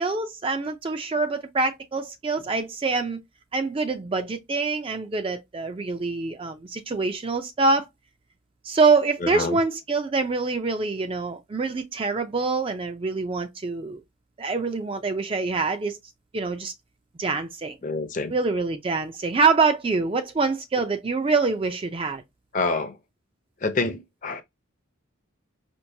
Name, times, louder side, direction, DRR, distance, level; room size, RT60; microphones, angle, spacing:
voice 1, 0.0-3.2 3.5-7.9 8.6-14.0 14.4-16.0 16.3-16.7 17.2-17.8 18.3-22.2, right 4 dB, 25° right, 0.3 m, -25 dB
voice 2, 9.2-9.6 17.8-18.3 22.5-23.0 23.6-24.4, left 3 dB, 40° left, 0.5 m, -27 dB
4.4 x 2.1 x 2.7 m
head